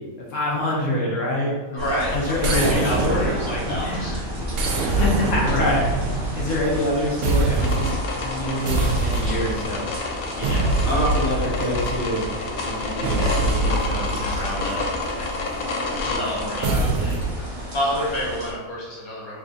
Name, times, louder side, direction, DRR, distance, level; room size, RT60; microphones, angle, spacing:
voice 1, 0.3-1.6 1.9-3.4 3.7-4.1 4.9-7.9 8.2-9.8 10.4-12.2 12.6-15.3 16.0-16.7 17.0-17.2, left 1 dB, 65° left, -4 dB, 1.1 m, -26 dB
voice 2, 1.7-4.2 4.6-5.1 10.8-11.2 16.0-16.9 17.7-19.4, equal, 25° left, -6 dB, 0.9 m, -28 dB
sound 1, 1.8-18.5, equal, 30° right, 0.8 m, -33 dB
sound 2, 2.4-4.0 4.5-6.9 7.2-8.1 8.6-9.7 10.4-12.3 13.0-15.4 16.6-17.4, right 2 dB, 70° right, 0.9 m, -24 dB
sound 3, 7.6-16.7, left 3 dB, 85° left, 1.1 m, -30 dB
3.5 x 2.4 x 3.9 m, 1.2 s
omnidirectional pair, 1.5 m